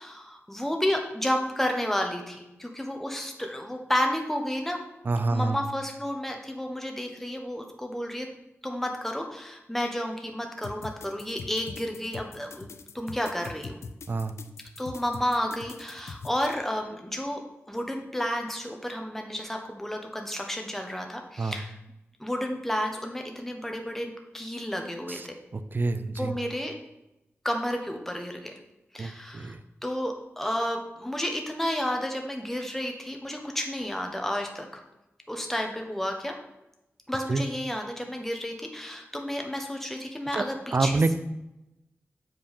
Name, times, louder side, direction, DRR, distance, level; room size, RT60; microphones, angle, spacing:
voice 1, 0.0-4.8 5.3-8.3 8.6-13.8 14.8-17.4 17.7-21.7 22.2-25.4 26.1-26.7 27.4-28.6 28.9-29.6 29.8-34.7 35.3-36.3 37.1-41.2, equal, 5° left, 3 dB, 1.2 m, -31 dB
voice 2, 5.0-5.6 14.1-14.3 21.4-21.6 25.1-25.3 25.5-26.4 29.0-29.6 37.3-37.4 40.3-40.4 40.7-41.1, right 3 dB, 45° right, 11 dB, 0.5 m, -27 dB
sound 1, 10.6-16.5, left 4 dB, 80° left, 0.5 m, -42 dB
7.7 x 4.7 x 5.3 m, 0.93 s
wide cardioid pair, 80°, 5 cm